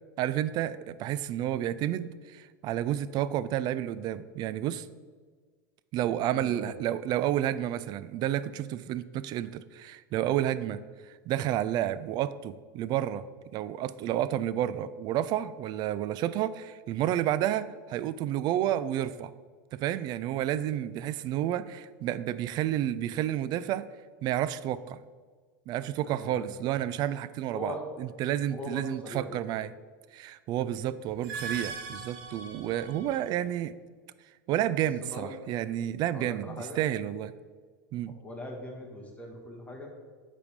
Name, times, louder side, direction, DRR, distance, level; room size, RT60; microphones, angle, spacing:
voice 1, 0.2-4.9 5.9-10.8 11.1-13.2 13.5-19.3 19.7-23.9 24.2-25.0 25.7-29.7 30.1-33.7 34.5-37.3 37.9-38.1, right 12 dB, 45° right, 15 dB, 0.3 m, -30 dB
voice 2, 6.3-6.7 26.0-26.5 27.5-27.8 28.5-29.3 30.7-30.9 35.0-35.3 36.1-36.8 38.1-39.9, left 1 dB, 15° left, 0 dB, 1.3 m, -41 dB
sound 1, 31.1-33.3, right 4 dB, 60° right, 0.7 m, -40 dB
8.5 x 3.4 x 5.1 m, 1.5 s
hypercardioid pair, 100°, 10 cm